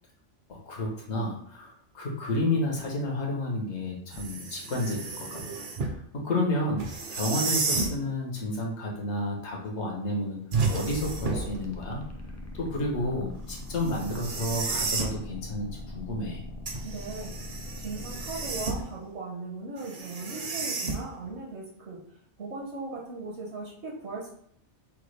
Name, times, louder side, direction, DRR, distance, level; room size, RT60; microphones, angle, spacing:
voice 1, 0.5-5.4 5.9-10.4 10.7-12.0 12.5-16.4, left 1 dB, 70° left, -1 dB, 1.3 m, -31 dB
sound 1, 4.1-6.0 6.8-8.0 10.5-11.6 13.8-15.2 16.7-19.0 19.8-21.3, right 4 dB, 50° right, 0.8 m, -32 dB
sound 2, 10.8-18.8, left 1 dB, 25° left, 0.4 m, -41 dB
voice 2, 16.8-17.4 17.8-24.3, right 3 dB, 70° right, -2 dB, 1.2 m, -38 dB
6.0 x 2.3 x 3.2 m, 0.67 s
omnidirectional pair, 1.2 m